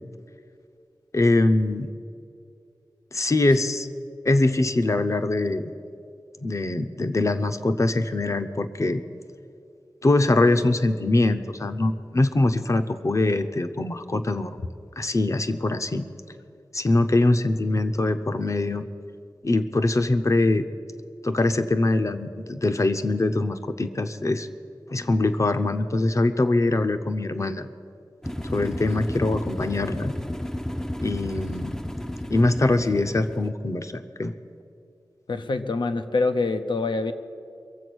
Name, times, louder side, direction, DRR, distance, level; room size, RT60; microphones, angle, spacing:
voice 1, 1.1-1.9 3.1-3.9 4.2-5.7 6.4-9.0 10.0-14.6 15.0-16.1 16.7-18.8 19.4-20.7 21.2-24.5 24.9-27.7 28.5-30.1 31.0-31.7 32.3-34.3, left 2 dB, 40° left, 9 dB, 0.7 m, -23 dB
sound 1, 28.2-33.5, equal, 5° left, 0.5 m, -33 dB
voice 2, 35.3-37.1, left 3 dB, 80° left, 9 dB, 0.7 m, -25 dB
22.5 x 7.6 x 6.2 m, 2.4 s
wide cardioid pair, 90°, 8 cm